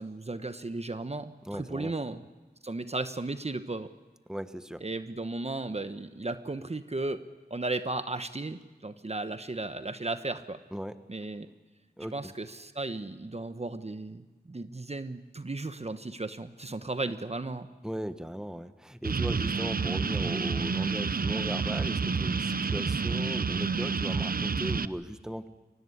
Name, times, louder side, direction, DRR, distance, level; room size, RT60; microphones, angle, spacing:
voice 1, 0.0-2.3 2.6-3.9 4.8-7.2 7.5-10.6 11.1-11.5 12.1-17.7, right 2 dB, 40° right, 10 dB, 1.1 m, -35 dB
voice 2, 1.4-1.9 4.3-4.8 10.7-11.0 12.0-12.3 17.8-25.5, equal, 5° right, 10 dB, 1.2 m, -37 dB
sound 1, 19.0-24.9, right 5 dB, 60° right, 0.7 m, -29 dB
24.0 x 18.5 x 9.8 m, 1.2 s
wide cardioid pair, 50°, 17 cm